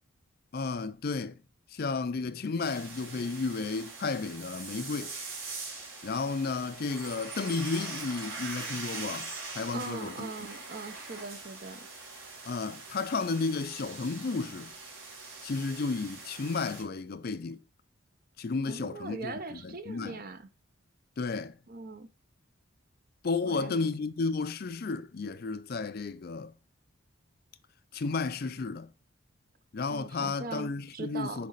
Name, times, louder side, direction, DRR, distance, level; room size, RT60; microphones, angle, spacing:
voice 1, 0.5-1.4 1.7-5.1 6.0-10.5 12.5-14.7 15.4-17.6 18.4-20.2 21.2-21.6 23.2-26.5 27.9-28.9 29.7-31.5, left 4 dB, 45° left, 0.4 m, -33 dB
sound 1, 2.6-16.8, right 3 dB, 70° right, 3.6 m, -42 dB
voice 2, 9.7-11.9 18.7-20.5 21.7-22.1 23.4-23.9 29.9-31.5, right 3 dB, 45° right, 0.7 m, -41 dB
6.4 x 4.1 x 4.0 m
head